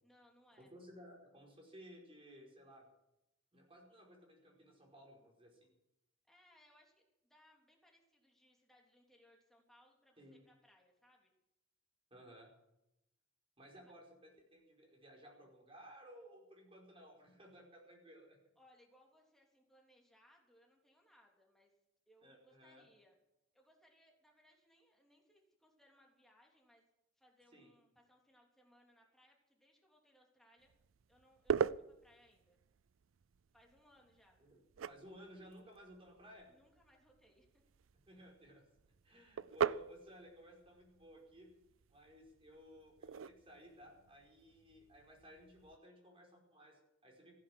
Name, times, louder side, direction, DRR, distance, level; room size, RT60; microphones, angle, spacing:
voice 1, 0.0-0.7 6.3-11.3 13.8-13.9 18.5-21.7 22.1-23.2 23.5-26.8 27.2-30.7 31.1-32.6 33.5-34.4 36.5-37.6, equal, ahead, 0 dB, 3.3 m, -69 dB
voice 2, 0.7-2.9 3.5-5.7 10.2-10.4 12.1-12.5 13.6-18.4 22.2-22.9 27.5-27.7 34.4-34.6 34.9-36.5 38.1-38.7 39.0-41.5 41.9-47.4, equal, 30° right, 0 dB, 5.0 m, -58 dB
sound 1, 30.6-45.8, right 6 dB, 85° right, 0.5 m, -44 dB
15.5 x 10.5 x 7.7 m, 0.86 s
head